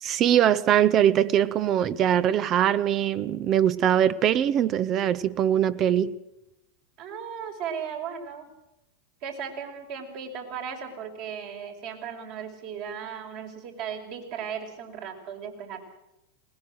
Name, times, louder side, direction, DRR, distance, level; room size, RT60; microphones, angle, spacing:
voice 1, 0.0-6.2, right 10 dB, 40° right, 0.9 m, -22 dB
voice 2, 7.0-8.4 9.2-15.8, right 7 dB, 55° right, 5.2 m, -36 dB
20.5 x 19.0 x 7.8 m
hypercardioid pair, 100°, 0 cm